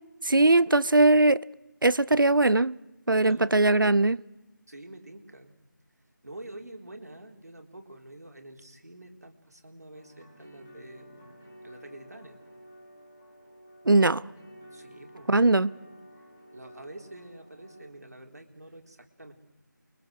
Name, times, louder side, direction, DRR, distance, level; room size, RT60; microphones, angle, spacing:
voice 1, 0.2-1.4 1.8-2.8 3.1-4.2 13.8-14.2 15.3-15.7, right 2 dB, 90° right, 0.9 m, -20 dB
voice 2, 3.1-3.5 4.7-5.6 6.2-12.4 14.7-15.3 16.5-19.3, right 1 dB, 55° right, 3.8 m, -47 dB
sound 1, 9.9-17.9, equal, 5° left, 1.8 m, -51 dB
29.5 x 23.5 x 6.5 m
figure-of-eight pair, 180°, 11 cm